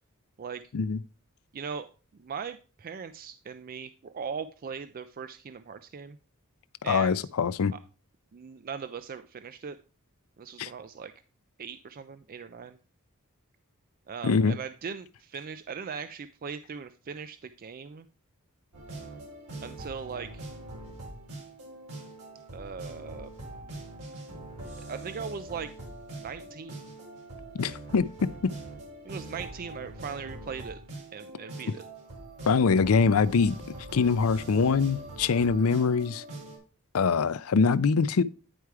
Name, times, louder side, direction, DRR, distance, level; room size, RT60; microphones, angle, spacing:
voice 1, 1.5-1.9 2.2-6.2 6.8-7.3 7.7-7.8 8.3-9.8 10.4-11.1 11.6-12.8 14.1-18.1 19.6-20.5 22.5-23.3 24.9-25.7 26.1-26.8 29.0-30.8 31.1-31.8, right 6 dB, 40° right, 0.4 m, -39 dB
voice 2, 6.8-7.7 10.6-10.7 14.2-14.6 27.5-28.1 32.5-33.6 33.9-36.2 36.9-38.2, left 5 dB, 65° left, 0.5 m, -23 dB
sound 1, 18.7-36.6, right 2 dB, 85° right, 4.4 m, -43 dB
9.8 x 4.6 x 4.7 m
head